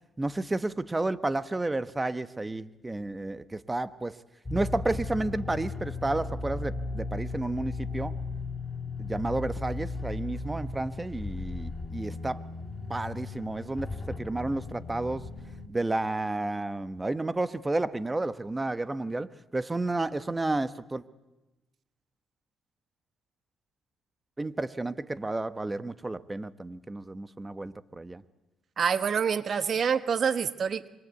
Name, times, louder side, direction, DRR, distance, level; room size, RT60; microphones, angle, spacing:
voice 1, 0.2-4.2 4.5-8.1 9.0-12.4 12.9-15.2 15.7-21.0 24.4-28.2, right 2 dB, 15° right, 13 dB, 1.1 m, -31 dB
sound 1, 4.4-15.7, left 3 dB, 25° left, 2.9 m, -36 dB
voice 2, 28.8-30.9, right 7 dB, 50° right, 12 dB, 1.3 m, -26 dB
27.0 x 24.0 x 8.3 m, 1.1 s
cardioid pair, 90°, 0 cm